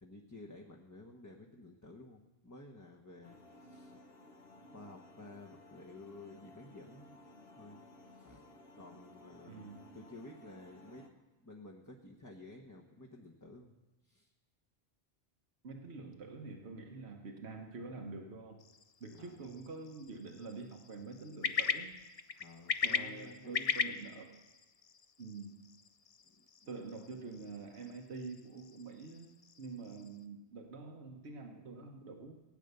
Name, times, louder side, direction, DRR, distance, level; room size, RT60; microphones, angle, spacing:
voice 1, 0.0-4.0 4.7-7.1 7.6-7.8 8.1-8.4 8.7-11.1 11.4-14.3 19.1-19.4 22.4-23.8 26.4-26.5, left 2 dB, 20° left, 0 dB, 1.0 m, -53 dB
sound 1, 3.2-11.1, left 1 dB, 60° left, 1.5 m, -57 dB
voice 2, 9.5-9.8 15.6-18.6 19.0-21.9 22.8-24.3 25.2-25.5 26.7-29.3 29.6-32.4, right 3 dB, 75° right, 3 dB, 1.4 m, -46 dB
sound 2, 18.6-30.2, left 5 dB, 40° left, 0.6 m, -40 dB
16.5 x 9.2 x 6.7 m, 1.1 s
omnidirectional pair, 1.1 m